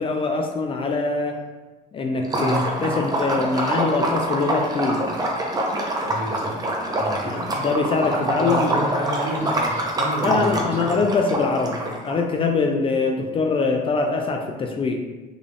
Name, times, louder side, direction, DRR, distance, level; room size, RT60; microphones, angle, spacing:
voice 1, 0.0-1.4 1.9-5.0 7.2-8.7 10.2-15.0, left 4 dB, 30° left, 3 dB, 0.4 m, -23 dB
Liquid, 2.2-12.2, right 1 dB, 25° right, 0.6 m, -25 dB
voice 2, 2.3-2.6 6.0-6.6 7.0-7.3 8.0-11.0, equal, 40° right, -2 dB, 1.0 m, -30 dB
3.7 x 2.4 x 3.4 m, 1.2 s
cardioid pair, 110°, 17 cm